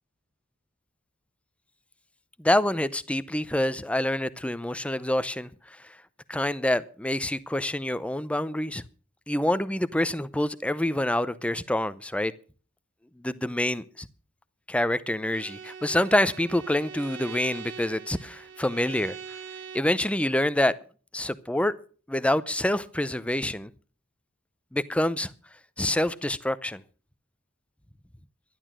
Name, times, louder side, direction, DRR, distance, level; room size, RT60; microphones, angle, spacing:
voice 1, 2.4-6.0 6.3-8.8 9.3-12.3 13.2-14.1 14.7-19.2 19.7-20.7 21.1-21.7 22.1-23.7 24.7-25.3 25.8-26.8, left 1 dB, 5° left, 0.6 m, -26 dB
Bowed string instrument, 15.3-20.0, right 7 dB, 65° right, 1.3 m, -42 dB
12.0 x 11.5 x 6.1 m
head